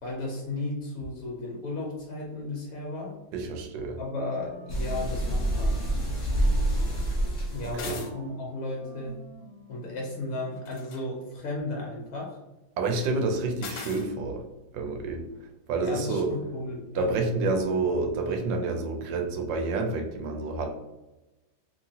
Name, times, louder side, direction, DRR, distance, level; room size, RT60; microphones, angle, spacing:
voice 1, 0.0-3.2 4.0-5.8 7.5-9.2 9.7-12.4 15.8-17.1, left 2 dB, 70° left, -1 dB, 0.8 m, -34 dB
voice 2, 3.3-4.0 7.6-8.0 12.8-14.4 14.7-15.3 15.7-16.3 16.9-20.7, right 3 dB, 80° right, 3 dB, 1.3 m, -28 dB
Wind instrument woodwind instrument, 4.2-10.4, right 1 dB, 30° right, 1.1 m, -48 dB
sound 1, 4.7-7.9, right 1 dB, 35° left, 0.8 m, -27 dB
sound 2, 7.7-8.1 10.6-11.0 13.6-14.1, left 5 dB, 90° left, 1.4 m, -39 dB
2.9 x 2.8 x 2.7 m, 1.0 s
omnidirectional pair, 2.1 m